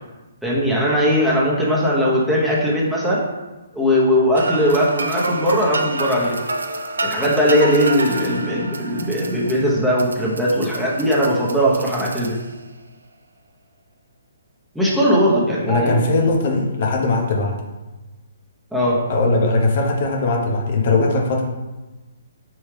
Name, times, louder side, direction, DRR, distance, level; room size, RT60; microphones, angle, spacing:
voice 1, 0.4-3.2 3.7-6.4 7.0-12.4 14.7-16.1 18.7-19.0, equal, 5° right, -6 dB, 0.9 m, -19 dB
sound 1, 4.3-12.7, right 2 dB, 85° right, 0.4 m, -28 dB
voice 2, 15.7-17.5 19.1-21.4, left 3 dB, 50° left, 1 dB, 0.7 m, -19 dB
4.6 x 3.1 x 3.3 m, 1.1 s
hypercardioid pair, 140°, 0 cm